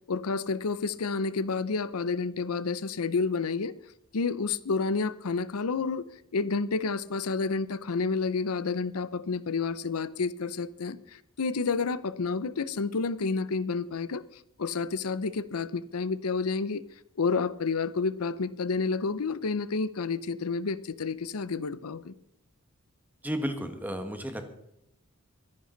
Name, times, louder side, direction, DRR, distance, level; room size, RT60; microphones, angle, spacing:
voice 1, 0.1-3.7 4.1-6.0 6.3-16.8 17.2-22.1, left 4 dB, 85° left, 16 dB, 0.7 m, -30 dB
voice 2, 23.2-24.5, equal, 10° right, 6 dB, 1.4 m, -33 dB
23.5 x 10.5 x 4.0 m, 0.79 s
head